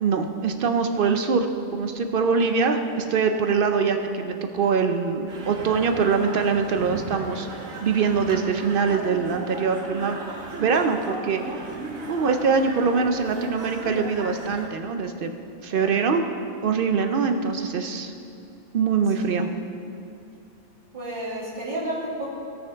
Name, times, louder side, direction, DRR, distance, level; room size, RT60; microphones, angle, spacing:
voice 1, 0.0-7.5 7.8-10.2 10.6-11.4 12.1-15.3 15.6-16.2 16.6-18.1 18.7-19.5, right 5 dB, 60° right, 6 dB, 0.6 m, -23 dB
voice 2, 2.3-3.0 15.7-16.1 20.9-22.3, right 1 dB, 35° right, -11 dB, 2.6 m, -33 dB
sound 1, 5.3-14.7, right 2 dB, 85° right, 1.5 m, -36 dB
16.5 x 6.4 x 3.4 m, 2.6 s
omnidirectional pair, 1.4 m